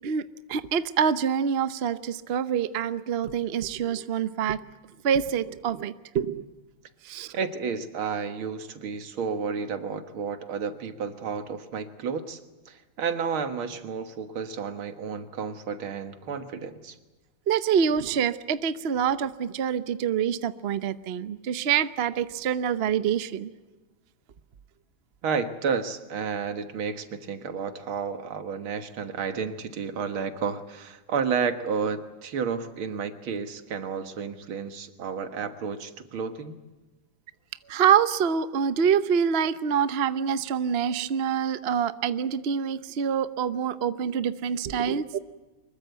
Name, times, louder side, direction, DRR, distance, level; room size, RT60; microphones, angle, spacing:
voice 1, 0.0-4.6 5.0-6.5 7.0-7.3 17.5-23.5 37.7-45.2, right 8 dB, 55° right, 12 dB, 0.7 m, -26 dB
voice 2, 7.3-12.4 12.7-17.0 25.2-36.6, right 6 dB, 85° right, 8 dB, 2.4 m, -31 dB
24.5 x 22.0 x 8.1 m, 1.2 s
omnidirectional pair, 2.2 m